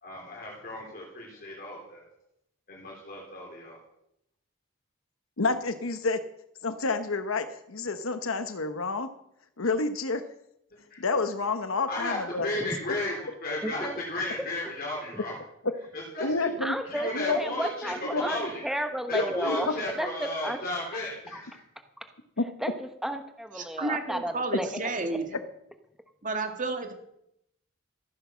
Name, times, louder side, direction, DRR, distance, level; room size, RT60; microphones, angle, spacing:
voice 1, 0.0-2.0 2.7-3.8 10.9-11.0 11.8-15.3 15.9-16.5 16.9-18.6 19.1-21.6, left 1 dB, 45° left, -2 dB, 3.7 m, -34 dB
voice 2, 5.4-6.2 6.6-9.1 9.6-10.2 11.0-12.7 16.2-16.7 17.1-17.6 18.1-18.2 19.1-19.6 22.4-22.5, left 3 dB, 85° left, 9 dB, 1.1 m, -29 dB
voice 3, 16.6-20.6 21.3-21.4 22.6-24.7 25.1-25.2, right 1 dB, ahead, 7 dB, 1.0 m, -33 dB
voice 4, 23.6-25.4 26.2-26.9, right 3 dB, 40° right, 6 dB, 2.1 m, -31 dB
15.0 x 9.6 x 6.2 m, 0.78 s
head